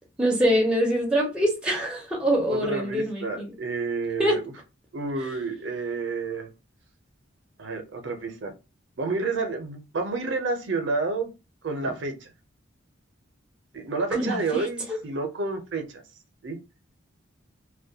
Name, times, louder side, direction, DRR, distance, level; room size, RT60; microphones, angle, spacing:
voice 1, 0.2-3.5 4.2-4.4 14.1-15.0, equal, 5° right, 0.5 m, -24 dB
voice 2, 2.5-4.4 4.9-6.5 7.6-8.5 9.0-11.3 11.6-12.3 13.7-16.0 16.4-16.6, right 3 dB, 65° right, 0.5 m, -29 dB
2.2 x 2.1 x 2.7 m
head